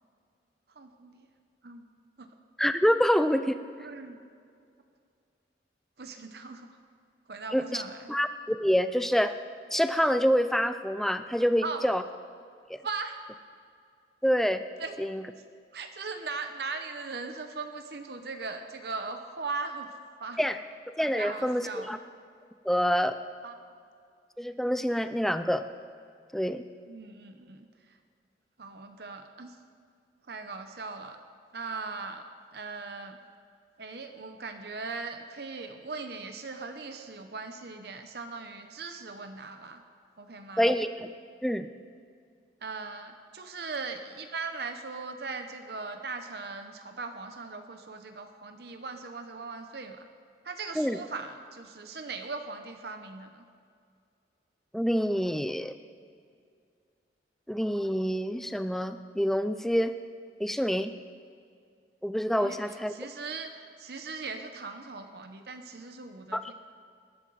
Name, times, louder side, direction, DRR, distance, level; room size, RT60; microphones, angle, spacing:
voice 1, 0.7-1.3 1.6-1.9 2.2-2.3 3.8-4.2 6.0-6.7 7.3-8.1 11.6-11.9 12.8-13.2 14.8-15.0 15.7-19.9 20.2-20.4 21.1-22.0 23.4-23.5 26.9-28.0 28.6-29.6 30.3-31.2 31.5-32.3 32.5-33.2 33.8-39.8 40.2-40.7 42.6-50.1 50.4-53.4 62.4-66.5, right 4 dB, 65° right, 6 dB, 0.8 m, -39 dB
voice 2, 2.6-3.6 7.5-7.8 8.1-9.3 9.7-12.0 12.7-12.8 14.2-14.6 15.0-15.2 20.4-20.6 21.0-22.0 22.6-23.2 24.4-25.7 26.3-26.6 40.6-41.1 41.4-41.7 50.8-51.0 54.7-55.7 57.5-59.9 60.4-60.9 62.0-62.9 66.3-66.4, equal, ahead, 10 dB, 0.4 m, -26 dB
20.5 x 11.5 x 4.0 m, 2.3 s
head